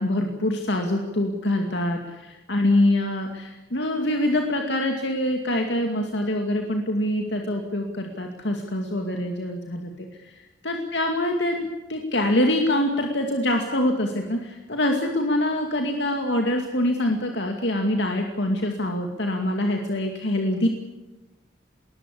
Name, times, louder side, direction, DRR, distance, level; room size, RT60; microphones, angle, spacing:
voice 1, 0.0-20.7, left 1 dB, 70° left, 3 dB, 2.4 m, -25 dB
20.5 x 20.5 x 8.5 m, 1.1 s
head